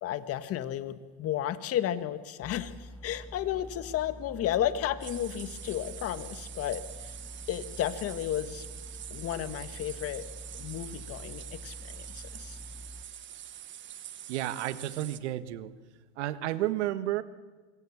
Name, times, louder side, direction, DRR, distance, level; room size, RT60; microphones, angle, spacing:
voice 1, 0.0-7.2 7.5-8.7 9.1-10.3 10.6-12.6, left 11 dB, 45° left, 11 dB, 1.8 m, -33 dB
sound 1, 2.4-13.1, equal, 5° left, 0.9 m, -46 dB
sound 2, 5.0-15.2, right 11 dB, 35° right, 1.4 m, -45 dB
voice 2, 14.3-15.7 16.2-17.2, right 14 dB, 85° right, 13 dB, 1.5 m, -31 dB
26.0 x 22.5 x 7.4 m, 1.3 s
supercardioid pair, 115°, 33 cm